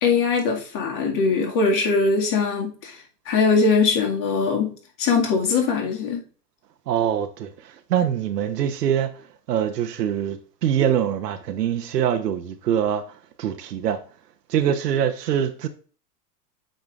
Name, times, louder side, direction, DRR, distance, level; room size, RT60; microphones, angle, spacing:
voice 1, 0.0-3.0 3.3-6.2, left 4 dB, 40° left, 1.9 m, -21 dB
voice 2, 6.9-9.1 9.5-13.0 13.4-14.0 14.5-15.7, right 9 dB, 80° right, 0.9 m, -24 dB
7.8 x 5.0 x 2.4 m
hypercardioid pair, 100°, 47 cm